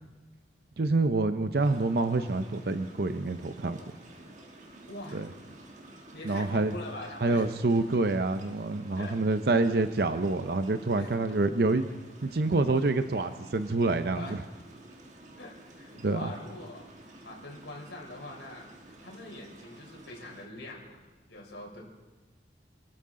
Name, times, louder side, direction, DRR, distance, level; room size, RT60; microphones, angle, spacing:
voice 1, 0.8-3.8 5.1-5.3 6.2-6.7 7.2-11.9 12.2-14.4 16.0-16.3, right 3 dB, 60° right, 9 dB, 0.6 m, -27 dB
sound 1, 1.6-20.5, right 1 dB, 40° right, 1.6 m, -51 dB
voice 2, 4.9-5.3 6.1-7.5 9.0-9.2 11.0-11.1 14.1-14.4 15.4-16.9 17.2-18.7 19.0-21.0 21.3-21.8, left 1 dB, 90° left, -1 dB, 3.7 m, -43 dB
27.0 x 13.0 x 3.8 m, 1.2 s
head